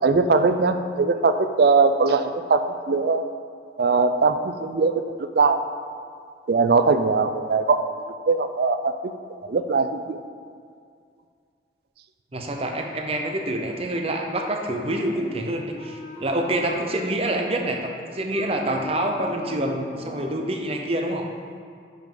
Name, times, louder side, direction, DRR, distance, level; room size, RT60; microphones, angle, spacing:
voice 1, 0.0-2.6 2.9-3.2 3.8-5.0 5.3-5.6 6.5-7.9 8.3-8.9 9.4-10.2, right 4 dB, 55° right, 9 dB, 0.4 m, -20 dB
voice 2, 12.3-21.3, right 1 dB, 35° right, 2 dB, 0.7 m, -27 dB
Wind instrument woodwind instrument, 14.7-20.5, equal, 35° left, 0.9 m, -41 dB
9.6 x 5.5 x 3.9 m, 2.3 s
head